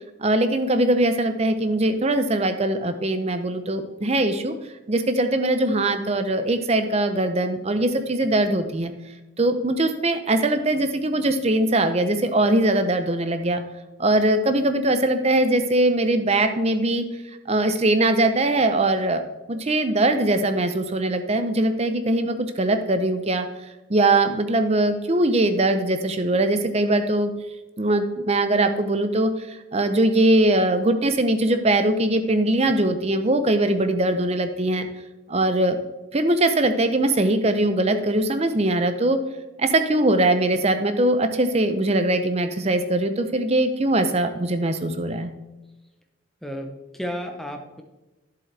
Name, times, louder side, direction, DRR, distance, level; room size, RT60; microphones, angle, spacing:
voice 1, 0.2-4.5 4.9-8.9 9.4-13.6 14.0-17.1 17.5-19.2 19.5-23.5 23.9-27.3 27.8-34.9 35.3-35.8 36.1-39.2 39.6-45.3, right 1 dB, 30° right, 9 dB, 0.6 m, -21 dB
voice 2, 46.4-47.8, equal, ahead, 3 dB, 0.8 m, -33 dB
10.5 x 7.6 x 3.3 m, 1.1 s
head